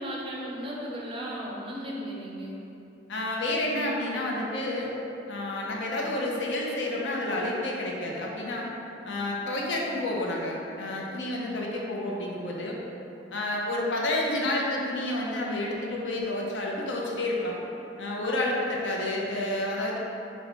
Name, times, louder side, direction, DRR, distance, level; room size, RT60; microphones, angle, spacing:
voice 1, 0.0-2.5, equal, 30° right, -4 dB, 0.5 m, -35 dB
voice 2, 3.1-4.9 5.3-8.7 9.0-12.8 13.3-17.6 18.0-20.0, left 1 dB, 75° left, -2 dB, 0.6 m, -30 dB
3.9 x 2.2 x 4.3 m, 2.9 s
head